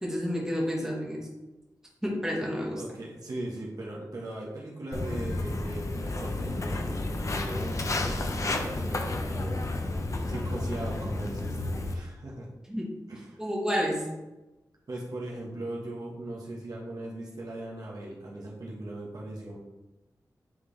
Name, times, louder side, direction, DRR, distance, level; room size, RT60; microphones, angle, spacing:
voice 1, 0.0-1.3 2.0-2.8 12.7-12.9 13.4-14.1, equal, 10° right, -3 dB, 1.6 m, -30 dB
voice 2, 2.7-9.7 10.3-12.5 13.1-13.4 14.9-19.6, right 1 dB, 60° right, -3 dB, 1.5 m, -39 dB
Walk footsteps, 4.9-11.9, left 2 dB, 45° left, 0.7 m, -31 dB
9.3 x 3.7 x 3.4 m, 1.0 s
wide cardioid pair, 115°, 7 cm